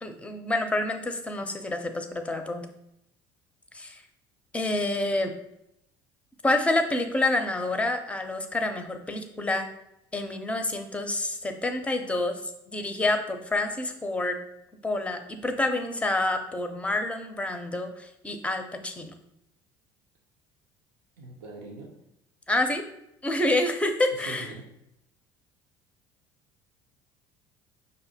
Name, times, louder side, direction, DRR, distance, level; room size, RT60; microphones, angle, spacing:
voice 1, 0.0-2.7 3.7-4.0 4.5-5.3 6.4-9.7 10.1-12.4 12.7-14.4 14.8-19.1 22.5-22.8 23.2-24.5, left 2 dB, 10° left, 6 dB, 0.6 m, -28 dB
voice 2, 21.2-21.9 24.1-24.6, right 3 dB, 85° right, -1 dB, 0.7 m, -42 dB
5.3 x 2.1 x 4.1 m, 0.81 s
supercardioid pair, 80°, 11 cm